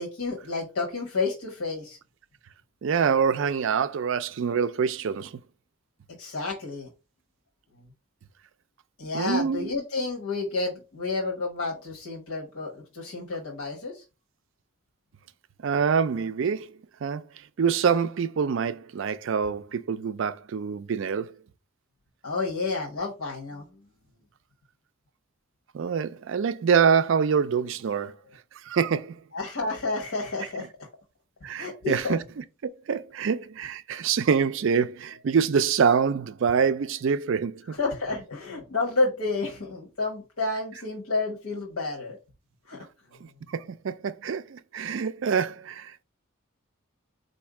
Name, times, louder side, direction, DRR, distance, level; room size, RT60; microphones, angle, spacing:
voice 1, 0.0-2.0 6.2-6.9 9.0-14.0 22.2-23.7 29.3-30.9 31.6-32.2 37.8-42.2 42.7-42.8, left 3 dB, 75° left, 1.0 m, -30 dB
voice 2, 2.8-5.3 9.1-9.7 15.6-16.7 17.0-17.3 17.6-21.3 25.7-28.2 28.6-29.2 31.4-32.2 32.9-37.8 43.2-46.0, right 6 dB, 55° right, 0.3 m, -25 dB
4.2 x 2.6 x 4.7 m
head